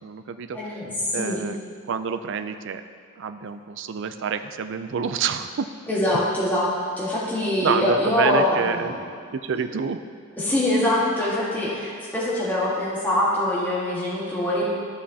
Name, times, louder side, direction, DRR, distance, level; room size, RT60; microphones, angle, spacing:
voice 1, 0.0-0.6 1.1-1.6 1.9-2.8 3.2-5.7 7.6-8.9 9.3-10.0, right 6 dB, 60° right, 9 dB, 0.4 m, -27 dB
voice 2, 0.5-1.4 5.9-6.7 7.0-8.9 10.4-14.7, left 1 dB, 10° left, -8 dB, 1.5 m, -24 dB
13.0 x 6.2 x 2.8 m, 2.1 s
head